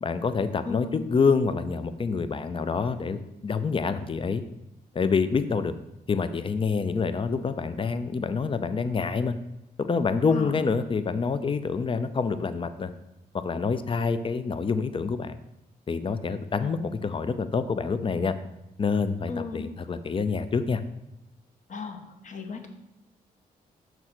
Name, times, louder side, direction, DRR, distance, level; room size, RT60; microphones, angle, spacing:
voice 1, 0.0-4.4 4.9-5.7 6.1-9.3 9.8-12.9 13.4-15.4 15.9-18.4 18.8-20.8, left 5 dB, 30° left, 11 dB, 0.5 m, -27 dB
voice 2, 0.6-1.1 10.3-10.7 16.6-16.8 19.3-19.7 21.7-22.7, left 4 dB, 50° left, 5 dB, 0.9 m, -36 dB
6.0 x 3.9 x 4.4 m, 0.91 s
cardioid pair, 65°, 16 cm